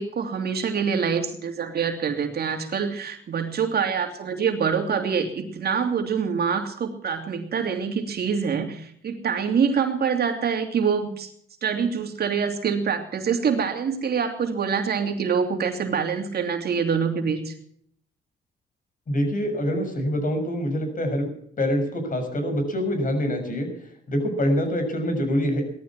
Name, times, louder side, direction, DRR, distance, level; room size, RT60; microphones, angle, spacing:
voice 1, 0.0-11.3 11.6-17.5, right 6 dB, 50° right, 5 dB, 2.9 m, -25 dB
voice 2, 19.1-21.3 21.6-25.6, equal, 40° left, 5 dB, 6.6 m, -25 dB
18.0 x 13.0 x 6.0 m, 0.65 s
cardioid pair, 90°, 20 cm